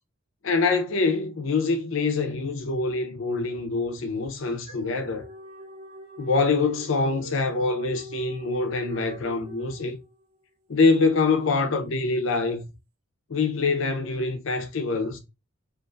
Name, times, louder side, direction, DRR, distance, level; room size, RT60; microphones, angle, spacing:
voice 1, 0.4-5.2 6.2-10.0 10.7-12.6 13.3-15.2, left 3 dB, 65° left, 0.5 m, -25 dB
sound 1, 4.0-10.4, equal, 90° right, 1.2 m, -44 dB
2.5 x 2.3 x 2.6 m
head